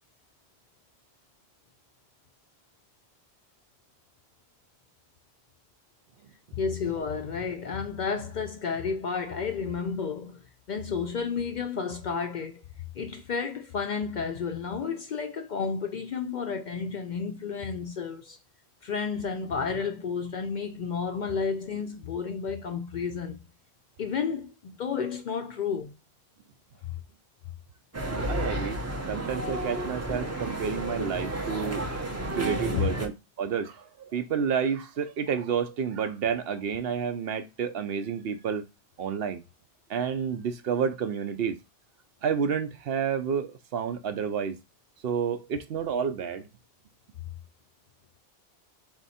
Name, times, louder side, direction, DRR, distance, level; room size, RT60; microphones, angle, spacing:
voice 1, 6.6-10.4 10.7-12.6 13.0-18.4 18.8-23.4 24.0-25.9 32.7-32.9, left 6 dB, 60° left, 0.5 m, -31 dB
sound 1, 27.9-33.1, right 1 dB, 20° right, 0.6 m, -32 dB
voice 2, 28.1-28.8 29.1-32.0 32.3-33.1 33.4-38.6 39.0-39.4 39.9-41.6 42.2-44.6 45.0-46.5, right 7 dB, 65° right, 0.8 m, -30 dB
3.6 x 3.0 x 4.1 m
omnidirectional pair, 1.1 m